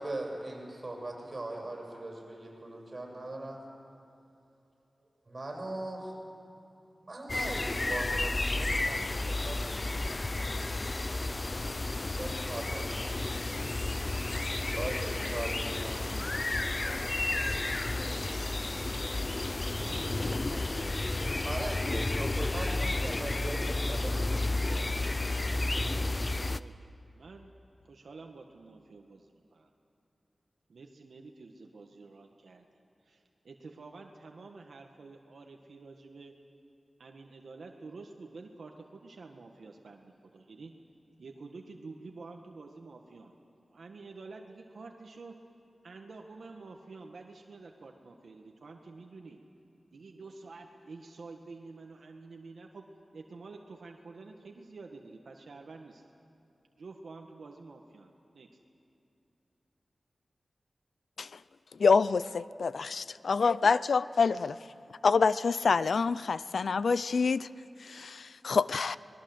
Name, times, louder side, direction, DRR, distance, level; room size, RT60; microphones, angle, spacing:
voice 1, 0.0-3.6 5.3-6.1 7.0-11.2 12.2-12.9 13.2-13.3 13.6-13.7 14.5-16.3 21.4-24.7, right 2 dB, 35° right, -1 dB, 6.9 m, -40 dB
sound 1, 7.3-26.6, left 2 dB, 35° left, 0.6 m, -32 dB
voice 2, 19.2-22.0 26.6-27.5 27.8-29.7 30.7-32.7 33.0-36.3 37.0-40.7 41.2-43.3 43.7-45.3 45.8-49.4 49.9-52.9 53.1-56.0 56.8-58.5, right 3 dB, 80° right, 2 dB, 1.5 m, -49 dB
voice 3, 61.8-64.6 65.0-67.5 67.8-69.0, left 5 dB, 80° left, 17 dB, 0.5 m, -26 dB
25.5 x 21.0 x 7.9 m, 2.8 s
wide cardioid pair, 105°, 0 cm